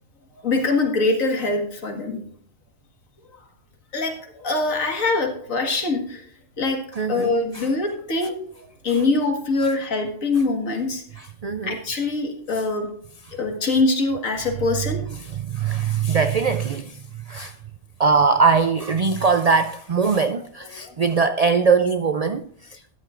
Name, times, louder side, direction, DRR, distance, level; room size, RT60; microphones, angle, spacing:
voice 1, 0.4-2.2 3.9-6.3 6.6-6.8 7.1-8.4 8.8-11.0 11.6-12.9 13.4-15.0 20.8-21.0, left 3 dB, 85° left, 2.1 m, -23 dB
voice 2, 7.0-7.7 11.2-11.7 15.2-17.5 18.0-23.0, right 5 dB, 90° right, 0.3 m, -21 dB
13.0 x 11.0 x 2.5 m
omnidirectional pair, 1.4 m